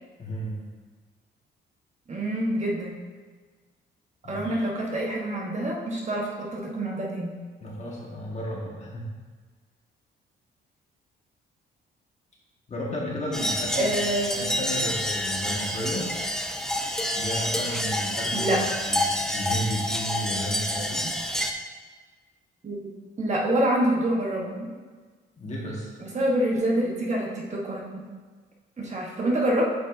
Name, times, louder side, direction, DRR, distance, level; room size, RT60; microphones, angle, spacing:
voice 1, 0.2-0.5 4.2-4.6 7.6-9.1 12.7-14.0 14.3-16.1 17.2-18.6 18.8-21.1 25.4-25.9, equal, 35° left, -4 dB, 1.8 m, -33 dB
voice 2, 2.1-3.0 4.3-7.4 13.7-14.5 18.3-18.6 22.6-22.9 23.2-24.7 26.0-28.1 28.8-29.7, right 1 dB, 35° right, -2 dB, 1.3 m, -26 dB
sound 1, 13.3-21.5, left 1 dB, 5° left, 0.6 m, -28 dB
8.2 x 5.3 x 2.7 m, 1.4 s
cardioid pair, 90°, 20 cm